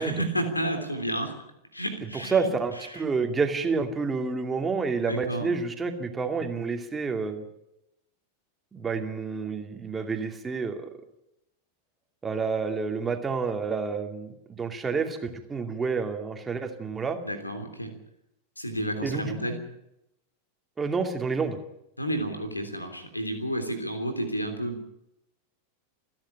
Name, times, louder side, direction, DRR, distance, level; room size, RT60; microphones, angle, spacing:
voice 1, 0.0-1.4 1.7-2.5 2.9-3.0 5.1-5.5 17.2-18.0 18.6-19.6 22.0-24.8, right 1 dB, 85° left, 6 dB, 3.3 m, -31 dB
voice 2, 2.3-7.5 8.7-10.9 12.2-17.2 19.0-19.6 20.8-21.6, right 4 dB, 15° right, 5 dB, 2.5 m, -29 dB
27.5 x 10.5 x 10.0 m, 0.86 s
figure-of-eight pair, 90°, 0 cm